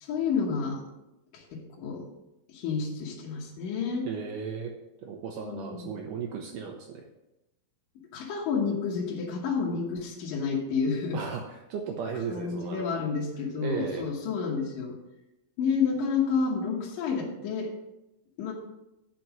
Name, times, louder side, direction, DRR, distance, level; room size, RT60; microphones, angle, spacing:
voice 1, 0.1-0.8 1.3-2.0 2.5-4.1 5.5-5.9 8.1-11.2 12.3-15.0 15.6-17.7 18.4-18.5, left 5 dB, 65° left, -3 dB, 2.7 m, -30 dB
voice 2, 4.0-4.7 5.0-7.1 11.1-12.8 13.6-14.1, right 6 dB, 75° right, 3 dB, 2.0 m, -35 dB
9.2 x 5.4 x 6.0 m, 0.94 s
omnidirectional pair, 4.5 m